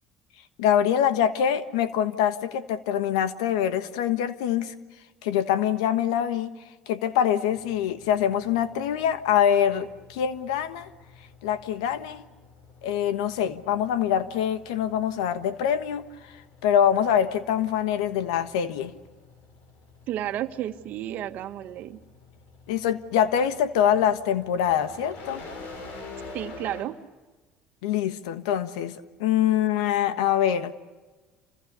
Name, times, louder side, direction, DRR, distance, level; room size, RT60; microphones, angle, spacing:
voice 1, 0.6-4.7 5.2-6.5 6.9-10.9 11.4-12.2 12.8-16.0 16.6-18.9 22.7-25.4 27.8-30.7, left 9 dB, 85° left, 12 dB, 1.3 m, -24 dB
sound 1, 7.5-26.8, left 3 dB, 70° left, 6.1 m, -48 dB
voice 2, 20.1-22.0 26.3-27.0, right 12 dB, 60° right, 8 dB, 1.6 m, -32 dB
29.0 x 26.0 x 6.9 m, 1.3 s
supercardioid pair, 80°, 3 cm